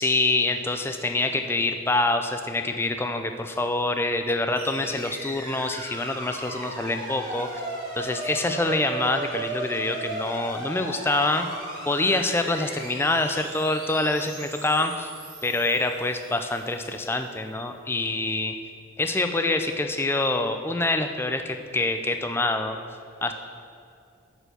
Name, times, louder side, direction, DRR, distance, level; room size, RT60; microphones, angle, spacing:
voice 1, 0.0-7.6 8.0-11.5 11.9-15.1 15.4-18.5 19.0-22.8 23.2-23.3, left 2 dB, 10° left, 7 dB, 0.3 m, -26 dB
sound 1, 4.5-16.8, right 2 dB, 45° right, 2.2 m, -36 dB
8.8 x 4.4 x 6.7 m, 2.4 s
head